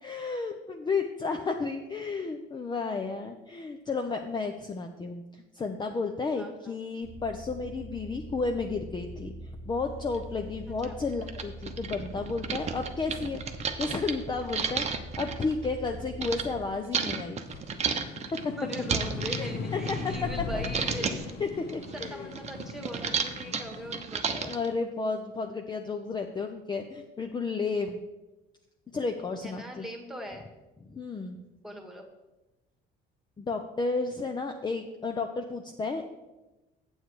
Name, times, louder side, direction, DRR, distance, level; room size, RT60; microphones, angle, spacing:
voice 1, 0.0-9.3 9.7-13.4 13.8-14.9 15.2-17.4 18.3-18.5 19.3-22.3 24.3-28.0 28.9-29.9 30.9-31.4 33.4-36.0, left 4 dB, 25° left, 5 dB, 0.6 m, -32 dB
sound 1, 7.0-16.7, right 1 dB, 75° left, 1.6 m, -44 dB
sound 2, 10.1-10.2 10.8-10.9 11.2-16.4 16.9-20.4 20.6-21.3 21.7-24.7, right 6 dB, 35° right, 0.9 m, -32 dB
sound 3, 14.4-17.0 17.4-24.0, left 4 dB, 60° left, 0.9 m, -39 dB
voice 2, 18.6-21.4 21.9-24.2 29.4-30.5 31.6-32.1, equal, ahead, 3 dB, 1.7 m, -40 dB
7.9 x 7.2 x 4.8 m, 1.1 s
cardioid pair, 100°, 19 cm